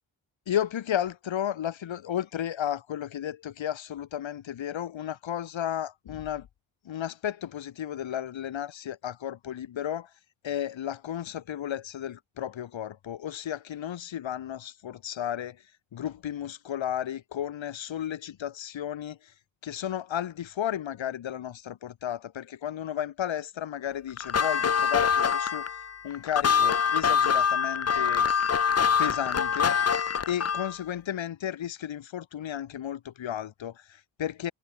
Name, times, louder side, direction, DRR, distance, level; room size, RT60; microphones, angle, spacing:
voice 1, 0.5-6.5 6.8-10.1 10.4-15.6 15.9-19.2 19.6-25.7 26.0-28.3 29.0-29.8 30.3-34.5, left 10 dB, 65° left, 1.2 m, -33 dB
sound 1, 24.2-30.8, left 7 dB, 30° left, 0.7 m, -25 dB
supercardioid pair, 40°, 49 cm